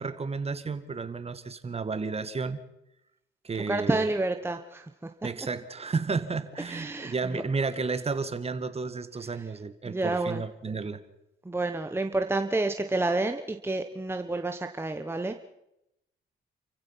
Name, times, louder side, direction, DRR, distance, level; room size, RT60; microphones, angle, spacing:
voice 1, 0.0-2.6 3.4-4.1 5.2-11.0, right 4 dB, 30° right, 11 dB, 1.9 m, -32 dB
voice 2, 3.7-4.9 6.7-7.1 9.9-10.4 11.4-15.4, right 2 dB, 10° right, 6 dB, 1.3 m, -29 dB
29.0 x 15.5 x 5.9 m, 0.86 s
cardioid pair, 90°, 20 cm